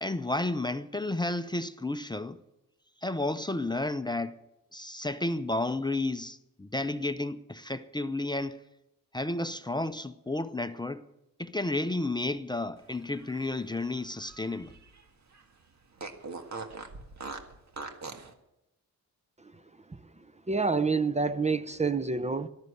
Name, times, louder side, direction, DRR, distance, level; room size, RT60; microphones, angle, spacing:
voice 1, 0.0-2.4 3.0-4.4 4.7-8.6 9.1-11.0 11.4-14.7, left 2 dB, 10° left, 0.7 m, -32 dB
Fart, 13.0-15.0 15.3-15.4 16.0-18.3, right 4 dB, 50° right, 1.9 m, -42 dB
voice 2, 20.5-22.5, right 4 dB, 20° right, 0.7 m, -27 dB
14.0 x 12.5 x 7.9 m
cardioid pair, 90°, 35 cm